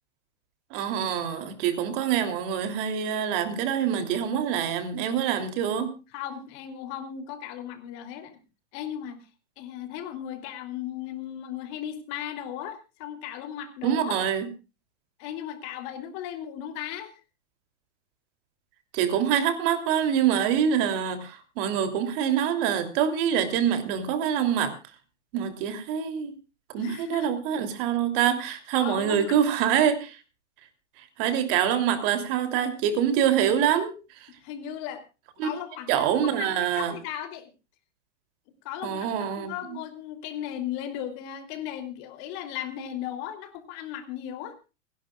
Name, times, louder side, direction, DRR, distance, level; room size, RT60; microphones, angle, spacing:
voice 1, 0.7-5.9 13.8-14.5 18.9-24.7 25.3-26.3 26.7-30.2 31.2-33.9 35.4-35.5 35.9-36.9 38.8-39.5, right 9 dB, 50° right, 9 dB, 3.1 m, -25 dB
voice 2, 6.1-8.4 8.7-9.3 9.6-14.2 15.2-17.2 26.8-27.3 28.8-29.4 34.4-35.0 35.4-37.5 38.6-44.5, left 10 dB, 45° left, 8 dB, 3.1 m, -36 dB
29.5 x 11.0 x 2.4 m, 0.30 s
hypercardioid pair, 125°, 36 cm